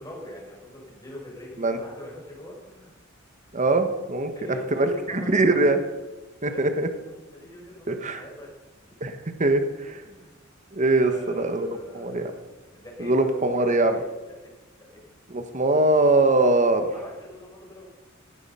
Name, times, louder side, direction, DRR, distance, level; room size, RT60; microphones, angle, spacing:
voice 1, 0.0-3.0 4.2-5.7 6.5-6.9 7.3-8.5 8.9-9.0 10.0-10.5 11.0-12.4 12.7-13.3 13.6-14.0 14.4-14.5 14.8-14.9 16.4-16.5 16.9-17.9, equal, 20° left, -3 dB, 6.5 m, -42 dB
voice 2, 3.5-4.3 4.8-5.8 6.4-6.9 7.9-8.2 9.0-9.1 9.4-10.0 10.7-11.7 11.9-12.2 13.0-13.9 15.3-16.9, right 2 dB, 35° right, 7 dB, 1.3 m, -22 dB
18.0 x 12.0 x 5.6 m, 1.1 s
head